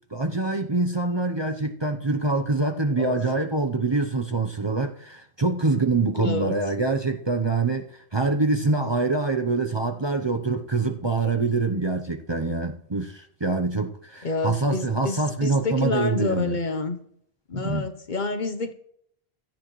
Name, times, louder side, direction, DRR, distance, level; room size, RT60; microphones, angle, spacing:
voice 1, 0.1-16.6 17.5-17.9, right 3 dB, 30° right, 0.7 m, -25 dB
voice 2, 6.2-6.6 14.2-17.0 17.5-18.7, left 3 dB, 50° left, 1.0 m, -28 dB
16.5 x 13.5 x 3.1 m
omnidirectional pair, 1.1 m